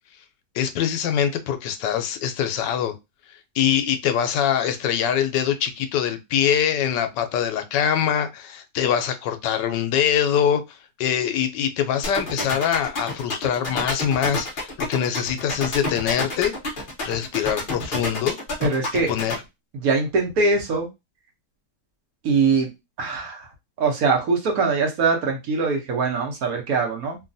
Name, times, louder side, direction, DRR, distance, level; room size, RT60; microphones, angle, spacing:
voice 1, 0.5-3.0 3.3-16.5 17.0-18.4 19.1-19.4, left 9 dB, 85° left, 1.2 m, -23 dB
sound 1, 12.0-19.3, left 2 dB, 45° left, 0.7 m, -28 dB
voice 2, 18.6-19.1 19.7-20.9 22.2-22.7 23.0-23.5 23.8-27.2, right 4 dB, 65° right, 1.1 m, -22 dB
3.1 x 2.3 x 2.5 m
omnidirectional pair, 1.9 m